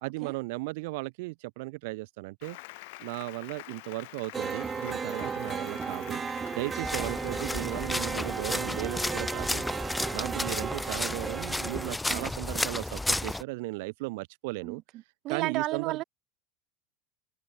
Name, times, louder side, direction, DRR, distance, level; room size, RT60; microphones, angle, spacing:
voice 1, 0.0-2.6 3.0-6.2 6.5-9.6 10.1-14.8 15.3-16.0, right 24 dB, 75° right, 0.7 m, -36 dB
Applause, 2.4-8.5, left 25 dB, 70° left, 2.4 m, -47 dB
sound 1, 4.3-12.0, right 5 dB, 20° right, 0.5 m, -35 dB
sound 2, 6.8-13.4, left 2 dB, 5° left, 1.0 m, -32 dB
voice 2, 15.2-16.0, right 17 dB, 50° right, 2.2 m, -32 dB
supercardioid pair, 130°, 0 cm